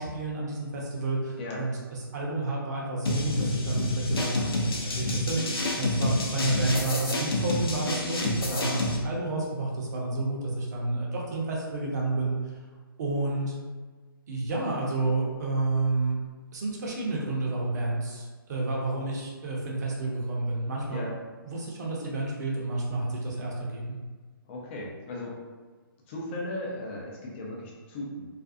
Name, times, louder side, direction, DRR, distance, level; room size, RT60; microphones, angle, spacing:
voice 1, 0.0-12.3 13.0-13.5 14.3-16.2 16.5-21.1 21.4-24.0, right 2 dB, 45° right, -3 dB, 0.7 m, -30 dB
sound 1, 3.1-9.0, left 1 dB, 75° left, 0.6 m, -28 dB
voice 2, 8.5-8.8 20.9-21.1 24.5-25.4 26.1-28.3, left 1 dB, 30° left, -3 dB, 0.5 m, -36 dB
2.4 x 2.2 x 2.6 m, 1.4 s
figure-of-eight pair, 145°, 12 cm